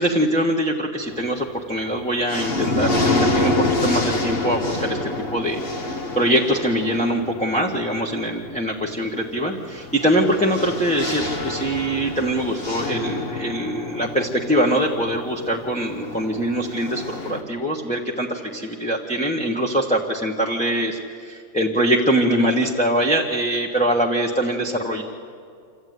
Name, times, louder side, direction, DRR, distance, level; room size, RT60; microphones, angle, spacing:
voice 1, 0.0-5.6 6.1-25.0, right 1 dB, 5° left, -3 dB, 1.2 m, -23 dB
sound 1, 1.1-1.6 2.0-17.4, left 2 dB, 45° left, 1.7 m, -27 dB
26.5 x 14.0 x 9.4 m, 2.3 s
omnidirectional pair, 1.5 m